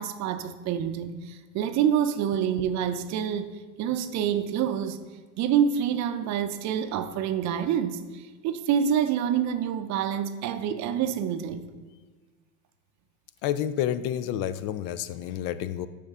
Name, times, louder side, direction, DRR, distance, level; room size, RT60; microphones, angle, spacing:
voice 1, 0.0-5.0 5.4-11.6, right 8 dB, 50° right, 0.6 m, -27 dB
voice 2, 13.4-15.9, left 10 dB, 65° left, 0.5 m, -29 dB
9.6 x 4.3 x 3.6 m
supercardioid pair, 120°, 36 cm